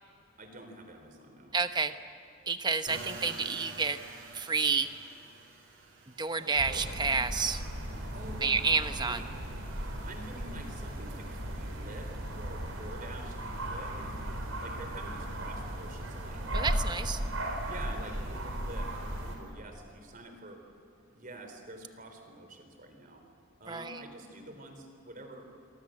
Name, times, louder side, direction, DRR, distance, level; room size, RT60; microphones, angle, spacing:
voice 1, 0.4-1.6 6.4-6.8 8.1-9.3 10.0-16.6 17.6-20.6 21.1-23.2 23.6-25.5, right 1 dB, 40° right, 5 dB, 4.0 m, -47 dB
voice 2, 1.5-2.0 2.5-4.0 4.3-4.9 6.1-7.6 8.4-9.2 16.5-17.2 23.7-24.0, right 4 dB, 20° right, 9 dB, 1.0 m, -30 dB
sound 1, 2.8-16.2 16.6-19.5, right 3 dB, 70° right, 5.3 m, -52 dB
sound 2, 6.6-19.4, right 1 dB, 85° right, 4.9 m, -36 dB
27.0 x 24.0 x 7.8 m, 2.9 s
head